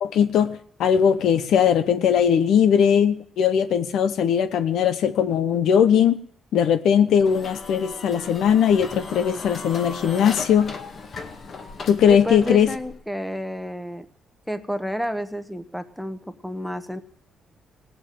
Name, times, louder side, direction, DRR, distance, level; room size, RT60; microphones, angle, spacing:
voice 1, 0.0-6.2 6.5-10.7 11.9-12.7, left 8 dB, 75° left, 11 dB, 0.9 m, -19 dB
sound 1, 7.2-13.0, left 4 dB, 50° left, 1.8 m, -37 dB
voice 2, 12.1-14.1 14.5-17.0, equal, ahead, 11 dB, 1.1 m, -30 dB
18.0 x 7.2 x 9.0 m, 0.63 s
cardioid pair, 90°, 0 cm